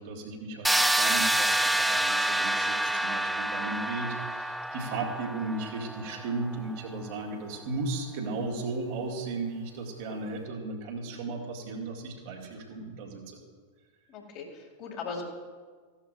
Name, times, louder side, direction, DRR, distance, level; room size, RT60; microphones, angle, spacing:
voice 1, 0.0-13.4, right 3 dB, 50° right, 0 dB, 2.0 m, -35 dB
sound 1, 0.6-6.4, right 1 dB, 5° right, 0.3 m, -27 dB
voice 2, 14.1-15.2, left 5 dB, 40° left, 0 dB, 2.2 m, -39 dB
15.0 x 11.5 x 2.5 m, 1.5 s
figure-of-eight pair, 90°, 0 cm